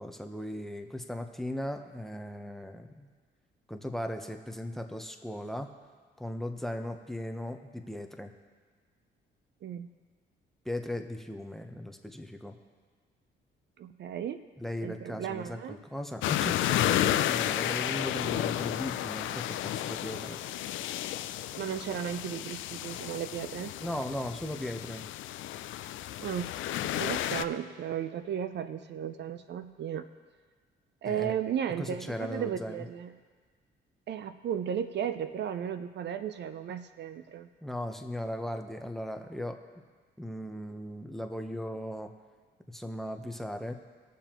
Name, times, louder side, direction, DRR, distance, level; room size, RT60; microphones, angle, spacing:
voice 1, 0.0-3.1 3.7-5.7 6.2-8.3 10.6-12.6 14.6-20.4 23.8-25.0 31.0-31.3 31.8-32.8 37.6-39.6 40.2-42.1 42.7-43.7, left 1 dB, ahead, 6 dB, 0.9 m, -37 dB
voice 2, 13.8-14.4 14.8-15.8 21.5-23.7 26.2-30.1 31.0-33.2 34.1-37.5, right 9 dB, 60° right, 10 dB, 0.5 m, -35 dB
sound 1, 16.2-27.4, left 13 dB, 75° left, 0.4 m, -32 dB
20.0 x 6.9 x 3.0 m, 1.5 s
cardioid pair, 90°, 20 cm